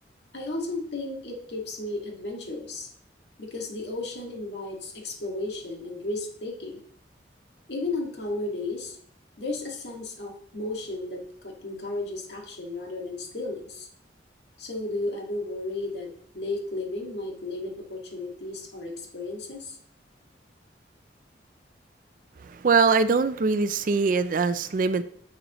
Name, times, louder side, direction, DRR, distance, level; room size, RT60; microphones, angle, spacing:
voice 1, 0.3-2.9 3.4-6.8 7.7-9.0 9.4-13.9 14.6-16.1 16.3-19.8, left 2 dB, 70° left, 0 dB, 1.9 m, -34 dB
voice 2, 22.4-25.0, right 4 dB, 45° right, 13 dB, 0.4 m, -22 dB
10.0 x 6.3 x 3.0 m, 0.62 s
head